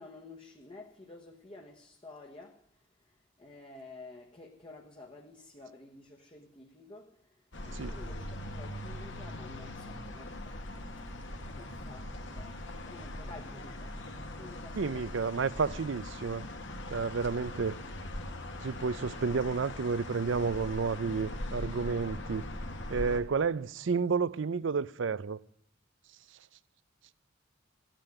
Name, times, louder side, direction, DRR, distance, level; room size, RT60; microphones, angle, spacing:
voice 1, 0.0-2.7 3.0-10.7 10.9-12.6 12.9-14.0 14.3-15.1 23.1-23.5, left 2 dB, 25° left, 1.3 m, -51 dB
sound 1, 7.5-23.2, left 1 dB, 65° left, 1.9 m, -41 dB
voice 2, 14.8-16.5 16.9-17.7 18.6-22.5 22.9-25.4, right 5 dB, 65° right, 0.5 m, -31 dB
14.5 x 9.1 x 9.0 m
head